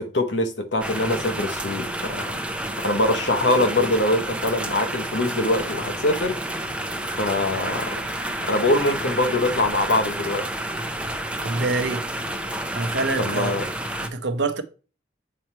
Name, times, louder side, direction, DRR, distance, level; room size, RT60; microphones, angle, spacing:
voice 1, 0.0-2.3 2.8-6.4 7.2-8.0 8.4-10.5 13.2-13.6, left 1 dB, 75° left, 1.0 m, -23 dB
sound 1, 0.8-14.1, right 1 dB, 5° right, 0.5 m, -30 dB
voice 2, 11.4-12.0 12.7-13.6 14.0-14.6, right 3 dB, 75° right, 0.7 m, -25 dB
7.7 x 3.1 x 4.3 m
head